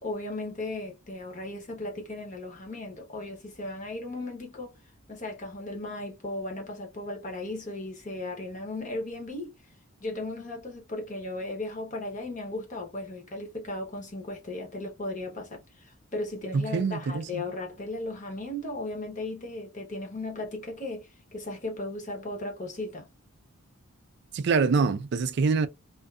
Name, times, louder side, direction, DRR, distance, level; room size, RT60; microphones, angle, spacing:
voice 1, 0.0-4.7 5.1-9.5 10.0-23.1, left 2 dB, 35° left, 0.8 m, -36 dB
voice 2, 16.5-17.4 24.3-25.7, right 4 dB, 50° right, 0.3 m, -25 dB
2.5 x 2.4 x 2.3 m
head